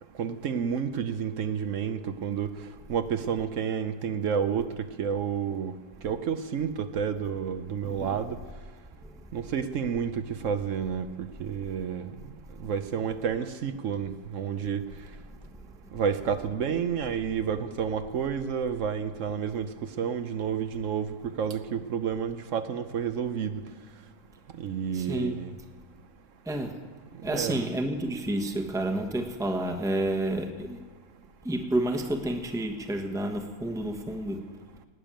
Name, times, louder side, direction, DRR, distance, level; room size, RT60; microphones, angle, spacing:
voice 1, 0.2-2.5 2.9-5.7 6.0-8.4 9.3-12.1 12.6-14.8 15.9-19.7 20.0-23.6 24.6-25.5 27.3-27.6, right 7 dB, 60° right, 10 dB, 0.9 m, -30 dB
voice 2, 7.8-8.1 24.9-25.3 26.5-26.7 27.2-30.8 31.4-34.4, right 1 dB, ahead, 4 dB, 1.0 m, -30 dB
19.0 x 6.9 x 9.0 m, 1.5 s
omnidirectional pair, 1.7 m